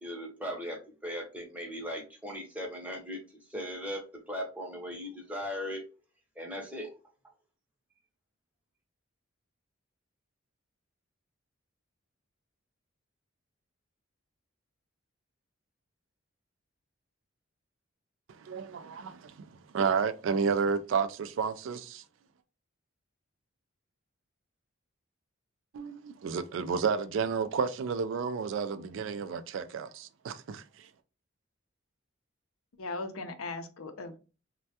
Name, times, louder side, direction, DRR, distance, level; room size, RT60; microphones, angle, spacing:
voice 1, 0.0-5.8 6.4-6.9, equal, 5° right, 0.7 m, -38 dB
voice 2, 18.3-19.5 19.7-22.0 25.7-30.9, right 6 dB, 65° right, 0.3 m, -31 dB
voice 3, 32.8-34.2, left 3 dB, 90° left, 0.5 m, -38 dB
3.2 x 2.2 x 2.7 m
head